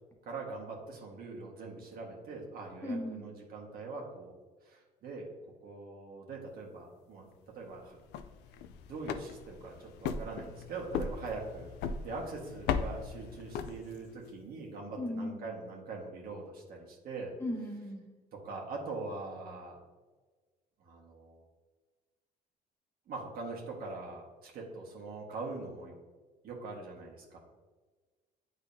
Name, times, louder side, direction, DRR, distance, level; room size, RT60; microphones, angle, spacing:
voice 1, 0.2-4.3 4.6-5.3 5.6-7.3 7.5-8.0 8.9-17.3 18.4-19.8 20.8-21.5 23.1-25.9 26.4-27.4, right 3 dB, 60° right, -1 dB, 1.5 m, -42 dB
voice 2, 2.8-3.2 15.0-15.4 17.4-18.0, left 1 dB, 15° left, 0 dB, 1.3 m, -36 dB
sound 1, 7.9-14.2, left 6 dB, 85° left, 0.4 m, -38 dB
8.7 x 4.0 x 2.7 m, 1.3 s
cardioid pair, 110°, 17 cm